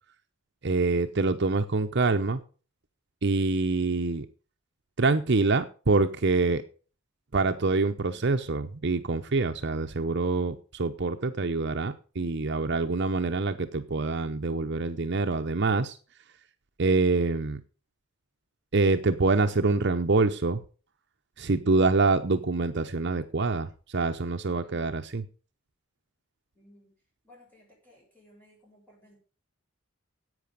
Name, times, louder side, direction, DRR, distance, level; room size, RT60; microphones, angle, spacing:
voice 1, 0.6-2.4 3.2-4.3 5.0-6.6 7.3-16.0 16.8-17.6 18.7-20.6 21.4-25.2, right 3 dB, 50° right, 7 dB, 0.8 m, -25 dB
voice 2, 24.4-24.8 26.5-27.0 27.2-29.2, left 1 dB, 10° left, -3 dB, 7.8 m, -58 dB
11.0 x 8.5 x 6.9 m, 0.38 s
head